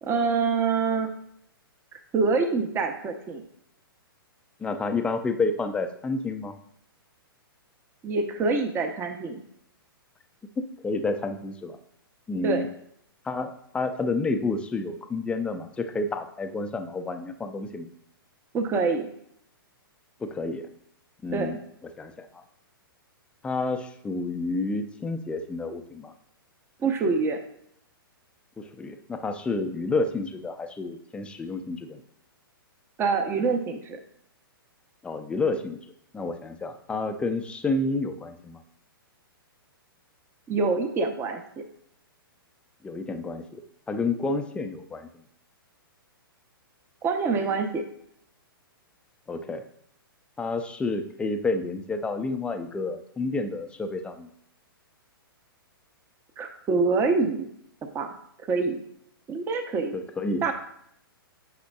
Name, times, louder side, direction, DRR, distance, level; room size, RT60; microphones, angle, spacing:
voice 1, 0.0-1.1 1.9-3.4 8.0-9.4 12.4-12.7 18.5-19.1 21.3-21.5 26.8-27.4 33.0-34.0 40.5-41.4 47.0-47.8 56.4-57.5 57.9-58.1 58.5-58.8 59.3-60.0 60.4-60.5, right 4 dB, 20° right, 5 dB, 0.8 m, -25 dB
voice 2, 4.6-6.5 10.6-11.8 12.3-12.7 13.2-17.9 20.2-20.7 21.2-21.6 22.0-22.4 23.4-26.1 28.6-32.0 35.0-35.8 36.1-38.6 42.8-43.6 43.9-45.1 49.3-49.6 50.4-54.3 59.9-60.5, left 3 dB, 10° left, 6 dB, 0.5 m, -30 dB
8.3 x 5.7 x 2.3 m, 0.71 s
hypercardioid pair, 120°, 12 cm